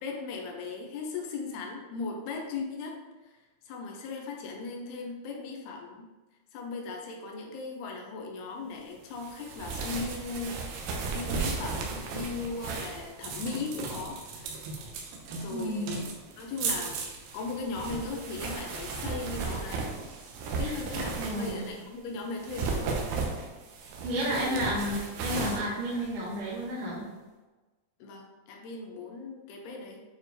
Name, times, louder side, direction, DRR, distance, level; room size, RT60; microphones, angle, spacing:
voice 1, 0.0-3.0 3.7-6.0 6.5-10.6 11.1-14.6 15.3-16.1 16.4-17.0 17.3-19.9 20.6-23.0 24.1-24.8 28.0-30.0, left 4 dB, 75° left, 1 dB, 2.8 m, -37 dB
sound 1, 9.2-21.8 22.3-26.7, right 4 dB, 80° right, 2.8 m, -35 dB
voice 2, 15.5-15.9 20.6-20.7 21.2-21.6 24.0-27.1, equal, 55° right, -10 dB, 3.3 m, -32 dB
9.0 x 4.4 x 3.2 m, 1.2 s
omnidirectional pair, 4.8 m